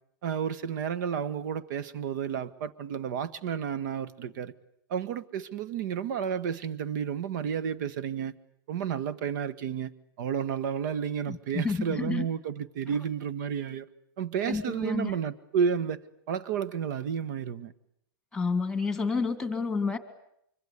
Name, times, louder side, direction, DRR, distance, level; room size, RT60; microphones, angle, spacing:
voice 1, 0.2-4.5 4.9-8.3 8.7-9.9 10.2-13.9 14.2-16.0 16.3-17.7, right 7 dB, 55° right, 1.5 m, -31 dB
voice 2, 11.3-12.3 12.9-13.0 14.4-15.1 18.3-20.0, left 4 dB, 5° left, 2.0 m, -30 dB
25.0 x 24.5 x 8.3 m
supercardioid pair, 150°, 12 cm